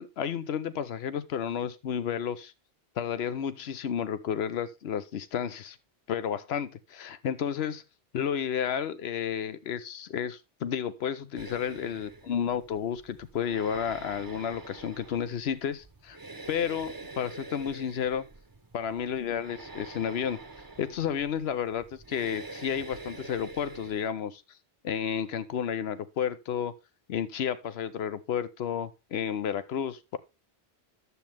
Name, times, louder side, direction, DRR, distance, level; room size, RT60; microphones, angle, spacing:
voice 1, 0.0-2.5 3.0-5.8 6.1-7.8 8.1-16.2 16.5-18.2 18.7-20.4 20.8-24.4 24.8-26.7 27.1-30.2, left 8 dB, 70° left, 1.0 m, -31 dB
sound 1, 11.4-24.1, right 3 dB, 20° right, 0.8 m, -46 dB
9.7 x 7.4 x 3.4 m
omnidirectional pair, 1.1 m